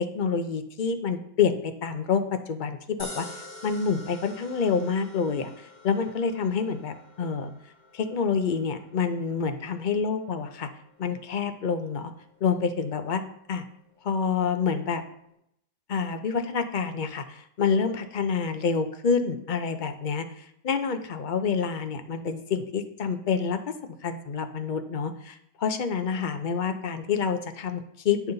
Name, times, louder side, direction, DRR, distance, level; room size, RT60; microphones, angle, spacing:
voice 1, 0.0-3.3 3.6-7.5 7.9-10.7 11.0-12.1 12.4-13.2 13.5-13.6 14.0-15.0 15.9-23.6 24.0-28.3, left 6 dB, 50° left, 8 dB, 0.6 m, -27 dB
sound 1, 3.0-15.3, left 1 dB, 30° left, 1.9 m, -49 dB
9.4 x 5.4 x 3.9 m, 0.74 s
omnidirectional pair, 1.5 m